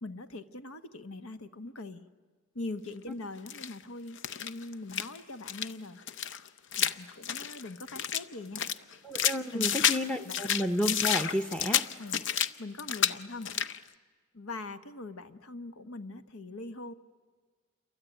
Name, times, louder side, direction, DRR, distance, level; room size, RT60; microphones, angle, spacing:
voice 1, 0.0-2.1 2.5-6.0 6.7-8.6 9.5-9.9 10.2-10.4 12.0-12.2 12.6-13.5 14.3-16.9, left 2 dB, 75° left, 11 dB, 1.2 m, -42 dB
sound 1, 3.5-3.7 4.2-5.2 5.5-5.7 6.1-8.2 8.6-10.0 10.3-12.5 12.8-13.2 13.4-13.8, left 9 dB, 55° left, 0.8 m, -30 dB
voice 2, 9.0-11.8, equal, 5° left, 8 dB, 0.8 m, -31 dB
28.0 x 23.5 x 9.1 m, 1.5 s
head